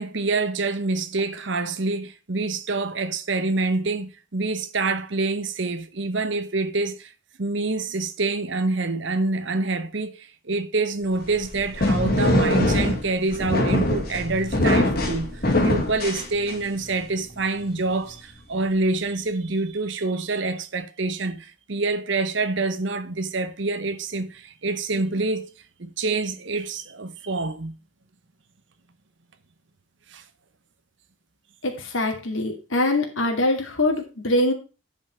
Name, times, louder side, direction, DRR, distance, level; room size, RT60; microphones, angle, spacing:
voice 1, 0.0-7.1 7.4-25.5 25.8-27.7 30.1-30.2, right 3 dB, 65° right, 0.9 m, -26 dB
sound 1, 11.2-16.8, left 1 dB, 50° left, 2.4 m, -23 dB
voice 2, 31.6-34.5, left 1 dB, 80° left, 2.5 m, -23 dB
10.5 x 5.5 x 4.8 m
head